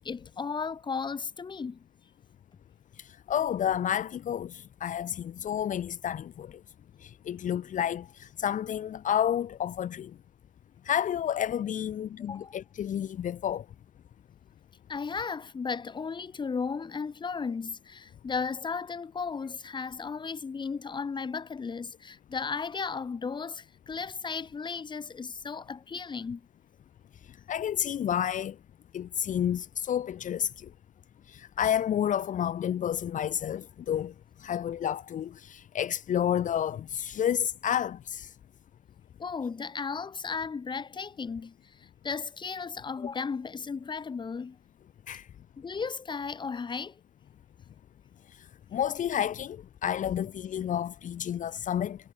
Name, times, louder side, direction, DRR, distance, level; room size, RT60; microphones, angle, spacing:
voice 1, 0.0-1.8 12.2-12.6 14.9-26.5 39.2-41.5 41.8-44.6 45.6-47.0, left 5 dB, 25° left, 2.0 m, -35 dB
voice 2, 3.3-6.5 7.0-10.1 10.8-13.6 27.5-28.5 28.9-30.5 31.3-34.1 34.4-38.3 45.1-45.2 48.7-52.0, left 9 dB, 50° left, 1.4 m, -30 dB
cardioid pair, 110°, 17 cm